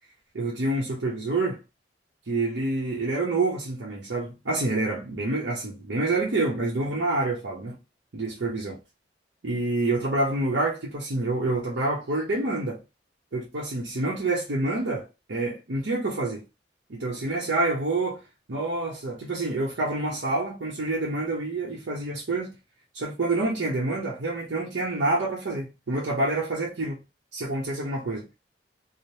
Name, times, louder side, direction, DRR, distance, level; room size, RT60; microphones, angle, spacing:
voice 1, 0.3-1.6 2.3-7.8 8.1-8.8 9.4-12.8 13.3-16.4 16.9-18.2 18.5-22.6 22.9-27.0 27.3-28.3, right 2 dB, 80° right, 0.8 m, -27 dB
3.2 x 2.1 x 2.7 m
head